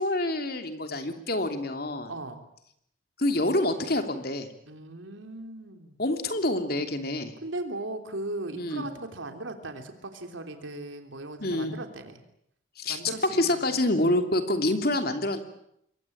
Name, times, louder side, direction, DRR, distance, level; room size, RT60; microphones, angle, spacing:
voice 1, 0.0-2.1 3.2-4.5 6.0-7.3 8.6-8.9 11.4-11.7 12.8-13.0 13.3-15.4, left 1 dB, 50° left, 6 dB, 3.1 m, -27 dB
voice 2, 2.1-2.4 4.6-6.0 7.4-12.2 12.9-13.6 14.9-15.1, right 2 dB, 85° right, 6 dB, 3.3 m, -38 dB
27.5 x 23.0 x 8.7 m, 0.74 s
head